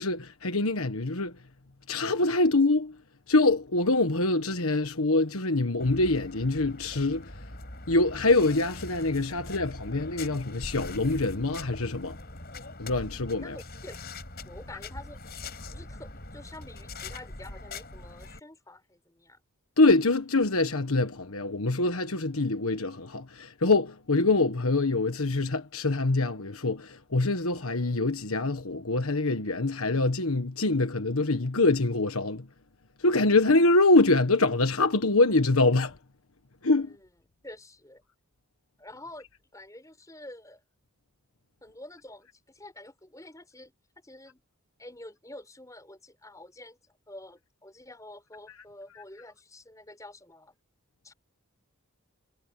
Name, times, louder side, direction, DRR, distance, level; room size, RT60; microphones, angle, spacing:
voice 1, 0.0-1.3 1.9-2.9 3.3-7.3 7.9-12.2 12.8-13.4 19.8-32.5 33.0-35.9 36.6-36.9, left 2 dB, 75° left, 1.4 m, -24 dB
sound 1, 5.8-18.4, left 2 dB, 45° left, 6.1 m, -42 dB
voice 2, 13.4-14.0 14.4-15.2 15.7-19.4 36.8-37.1 37.4-38.0 38.8-39.3 39.5-40.6 41.6-44.4 44.8-50.5 51.0-51.1, left 1 dB, 15° left, 5.1 m, -48 dB
head